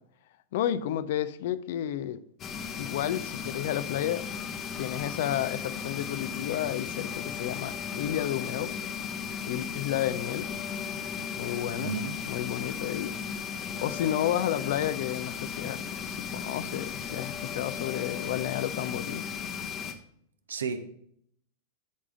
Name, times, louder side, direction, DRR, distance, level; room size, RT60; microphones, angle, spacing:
voice 1, 0.5-2.2 2.8-4.2 4.8-8.7 9.4-10.5 11.4-12.0 12.3-13.1 13.8-19.2, left 11 dB, 55° left, 0.5 m, -31 dB
sound 1, 2.4-19.9, left 6 dB, 30° left, 1.0 m, -36 dB
voice 2, 11.8-12.2 20.5-21.0, right 6 dB, 70° right, 0.8 m, -33 dB
12.5 x 4.8 x 3.7 m
figure-of-eight pair, 90°, 0 cm